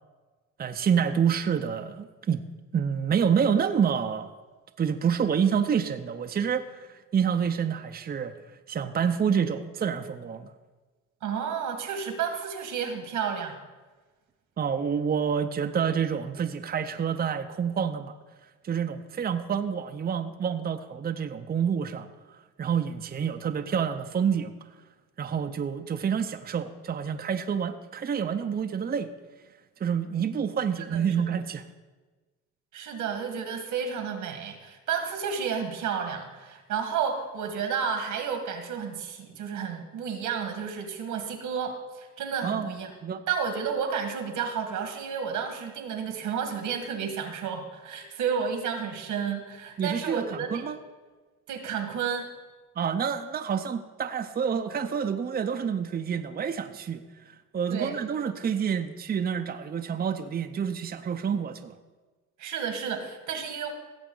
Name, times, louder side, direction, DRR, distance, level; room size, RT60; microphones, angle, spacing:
voice 1, 0.6-2.4 2.7-4.3 4.8-8.3 8.7-10.5 14.6-18.1 18.6-22.1 22.6-24.5 25.2-29.1 29.8-31.6 42.4-43.2 49.8-50.8 52.8-57.0 57.5-61.7, right 7 dB, 30° right, 7 dB, 0.6 m, -28 dB
voice 2, 11.2-13.6 30.8-31.2 32.7-42.9 43.3-50.7 51.5-52.3 57.7-58.0 62.4-63.7, right 7 dB, 85° right, 5 dB, 1.7 m, -31 dB
16.5 x 7.1 x 3.8 m, 1.3 s
cardioid pair, 90°, 30 cm